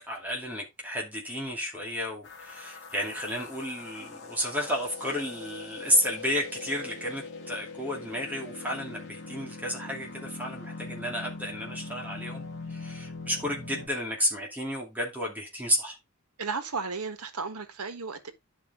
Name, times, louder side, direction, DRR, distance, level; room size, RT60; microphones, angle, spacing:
voice 1, 0.1-16.0, equal, 10° right, 2.6 m, -32 dB
sound 1, 2.2-13.9, left 3 dB, 50° left, 2.5 m, -42 dB
voice 2, 16.4-18.3, right 4 dB, 90° right, 1.4 m, -34 dB
11.0 x 5.0 x 3.6 m
head